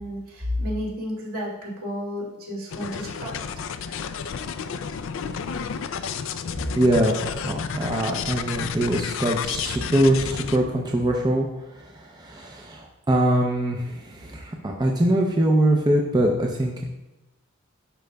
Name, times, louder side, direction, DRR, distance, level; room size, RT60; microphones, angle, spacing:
voice 1, 0.0-3.5, left 1 dB, 80° right, -5 dB, 2.4 m, -31 dB
sound 1, 2.7-10.6, left 6 dB, 60° left, 0.3 m, -31 dB
voice 2, 6.7-11.5 11.8-17.0, right 1 dB, 20° right, 0 dB, 0.5 m, -23 dB
11.5 x 5.2 x 2.3 m, 0.97 s
head